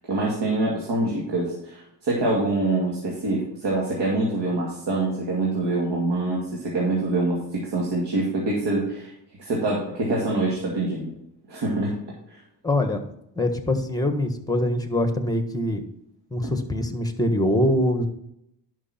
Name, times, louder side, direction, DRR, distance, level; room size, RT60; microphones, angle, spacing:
voice 1, 0.1-9.1 9.4-11.1 11.5-11.9 12.3-12.4 16.4-16.5, right 2 dB, 80° right, -3 dB, 2.6 m, -25 dB
voice 2, 12.6-13.0 13.4-15.8 16.3-18.1, left 1 dB, 10° left, 8 dB, 1.5 m, -23 dB
11.0 x 6.1 x 4.4 m, 0.78 s
cardioid pair, 90°, 41 cm